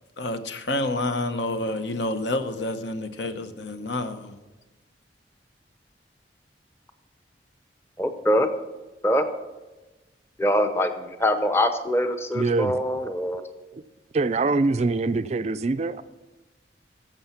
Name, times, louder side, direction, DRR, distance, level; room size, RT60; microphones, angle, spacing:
voice 1, 0.2-4.4, left 2 dB, 75° left, 9 dB, 0.9 m, -28 dB
voice 2, 8.0-8.5 9.0-9.2 10.4-13.4, left 1 dB, 15° left, 9 dB, 0.7 m, -23 dB
voice 3, 12.3-12.8 13.0-13.1 13.7-13.8 14.1-16.0, right 3 dB, 35° right, 13 dB, 0.4 m, -24 dB
15.0 x 6.9 x 5.7 m, 1.1 s
head